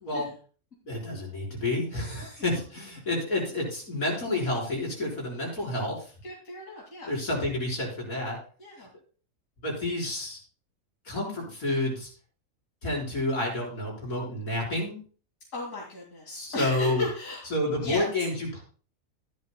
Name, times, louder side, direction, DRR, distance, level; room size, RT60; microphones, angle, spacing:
voice 1, 0.8-6.1 7.0-8.4 8.8-8.9 9.6-10.4 11.0-12.1 12.8-15.0 16.3-17.1 17.5-18.6, left 2 dB, 85° left, -2 dB, 4.9 m, -29 dB
voice 2, 6.2-7.1 8.6-8.9 15.5-17.5 17.8-18.1, left 2 dB, 70° left, -3 dB, 2.7 m, -36 dB
14.5 x 11.0 x 2.2 m, 0.39 s
omnidirectional pair, 1.5 m